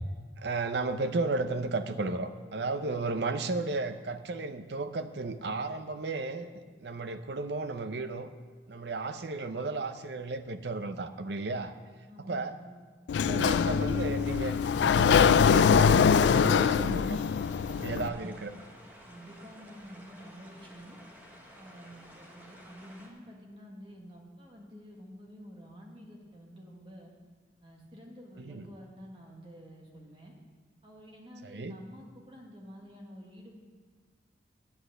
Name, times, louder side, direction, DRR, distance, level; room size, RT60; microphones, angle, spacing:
voice 1, 0.4-8.3 8.7-11.7 12.2-12.6 13.3-17.2 17.7-18.5 28.4-28.7 31.4-31.8, right 3 dB, 70° right, 9 dB, 0.6 m, -34 dB
voice 2, 12.1-12.6 17.9-18.3 19.0-21.0 21.6-27.1 27.6-30.3 30.8-33.6, equal, 30° right, -1 dB, 1.7 m, -49 dB
Sliding door, 13.1-18.1, left 6 dB, 75° left, 0.3 m, -23 dB
sound 1, 13.7-23.1, equal, 10° right, 1.2 m, -52 dB
10.0 x 8.1 x 6.6 m, 1.5 s
head